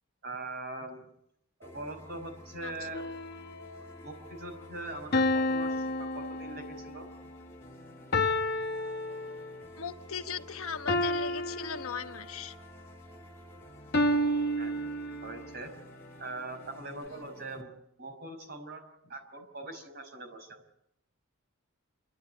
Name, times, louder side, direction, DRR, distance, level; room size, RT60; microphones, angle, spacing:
voice 1, 0.2-1.0 1.6-3.0 4.0-7.1 14.6-14.9 15.2-15.7 16.2-17.7 18.0-20.6, right 2 dB, 50° right, 4 dB, 5.5 m, -42 dB
sound 1, 1.6-17.6, equal, 10° left, 2.8 m, -51 dB
sound 2, 2.9-3.8 5.1-7.0 8.1-9.7 10.9-12.5 13.9-15.6, left 1 dB, 45° left, 1.0 m, -30 dB
voice 2, 9.8-12.5 17.1-17.3, left 6 dB, 70° left, 7 dB, 1.2 m, -38 dB
28.5 x 12.5 x 9.5 m, 0.78 s
head